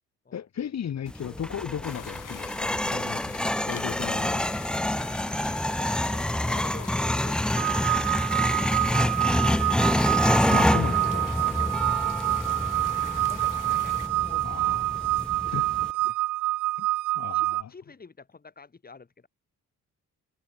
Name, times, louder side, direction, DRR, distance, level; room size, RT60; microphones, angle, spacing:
voice 1, 0.3-3.2 3.7-4.6 10.5-11.7 14.4-14.9 15.5-15.6 16.8-16.9 17.1-17.7, left 9 dB, 60° left, 2.6 m, -35 dB
sound 1, 1.1-15.9, left 1 dB, 5° left, 0.3 m, -27 dB
sound 2, 1.8-14.1, left 12 dB, 80° left, 4.2 m, -44 dB
voice 2, 5.5-9.5 12.7-15.1 15.4-16.3 17.3-19.3, left 4 dB, 30° left, 3.9 m, -49 dB
sound 3, 7.6-17.6, right 17 dB, 85° right, 0.6 m, -27 dB
cardioid pair, 100°, 31 cm